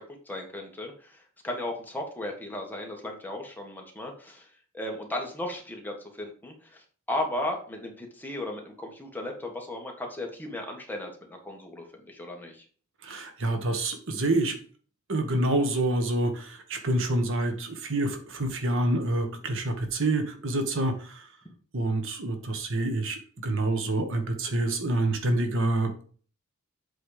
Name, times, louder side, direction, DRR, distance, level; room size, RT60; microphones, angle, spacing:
voice 1, 0.0-4.5 4.7-6.8 7.1-12.6 21.4-21.5, left 1 dB, 10° left, 1 dB, 1.6 m, -36 dB
voice 2, 13.0-14.6 15.1-21.3 21.7-26.0, right 2 dB, 65° right, 6 dB, 1.4 m, -27 dB
7.9 x 4.3 x 5.0 m, 0.42 s
head